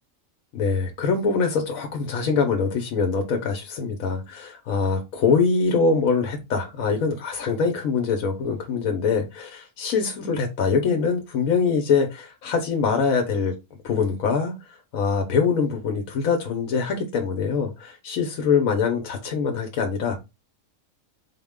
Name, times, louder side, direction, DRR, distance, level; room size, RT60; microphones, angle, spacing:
voice 1, 0.5-13.5 13.8-14.5 14.9-20.2, left 5 dB, 85° left, 3 dB, 1.1 m, -23 dB
4.2 x 2.1 x 3.5 m, 0.24 s
omnidirectional pair, 1.4 m